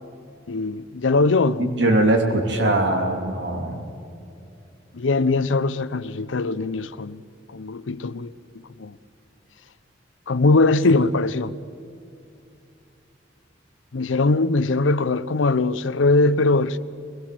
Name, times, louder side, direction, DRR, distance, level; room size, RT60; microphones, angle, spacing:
voice 1, 0.5-1.7 4.9-7.2 7.5-8.3 8.8-9.0 10.3-11.6 13.9-16.8, left 3 dB, 85° left, 0.6 m, -21 dB
voice 2, 1.6-3.8, right 1 dB, 65° right, 2.9 m, -21 dB
22.5 x 20.5 x 7.7 m
head